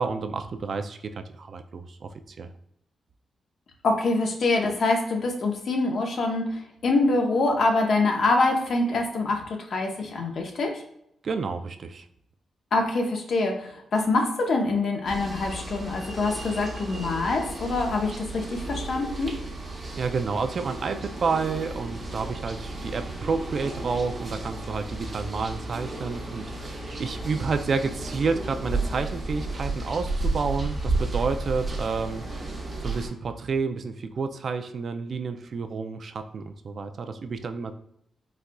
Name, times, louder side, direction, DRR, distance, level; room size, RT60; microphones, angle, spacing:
voice 1, 0.0-2.1 2.4-2.5 11.2-12.1 19.9-32.5 32.8-37.7, right 4 dB, 60° right, 8 dB, 0.3 m, -30 dB
voice 2, 3.8-6.5 6.8-9.4 9.7-10.7 12.7-19.3, left 3 dB, 65° left, 3 dB, 0.7 m, -25 dB
sound 1, 15.1-33.1, right 2 dB, 40° right, 1.0 m, -33 dB
4.2 x 2.4 x 2.2 m, 0.76 s
cardioid pair, 60°, 0 cm